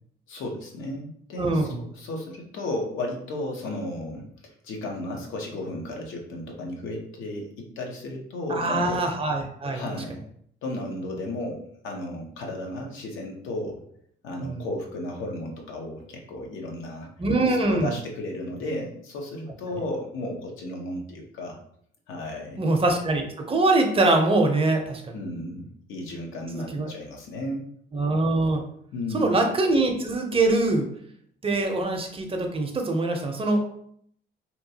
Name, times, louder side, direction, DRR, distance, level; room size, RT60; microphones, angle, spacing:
voice 1, 0.3-9.0 9.7-10.3 10.6-13.8 14.2-17.1 17.4-21.6 22.1-22.6 25.1-27.7 28.9-29.3 33.4-33.6, left 1 dB, 80° left, 1 dB, 0.7 m, -34 dB
voice 2, 1.4-1.8 8.5-9.8 14.4-14.7 17.2-17.9 22.6-25.2 26.5-26.9 27.9-28.6 29.1-30.9 31.4-33.6, right 2 dB, 30° right, 3 dB, 0.5 m, -23 dB
2.9 x 2.3 x 2.7 m, 0.67 s
cardioid pair, 90°, 20 cm